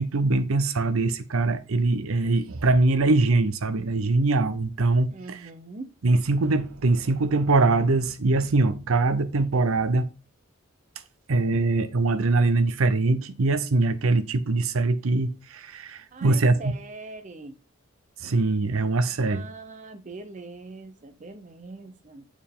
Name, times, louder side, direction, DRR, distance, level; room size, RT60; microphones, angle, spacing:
voice 1, 0.0-5.4 6.0-10.1 11.3-16.7 18.2-19.5, right 3 dB, 80° right, 0.6 m, -23 dB
voice 2, 5.1-5.9 16.1-17.6 19.0-22.3, right 3 dB, 35° right, 0.6 m, -42 dB
7.1 x 4.4 x 3.6 m
head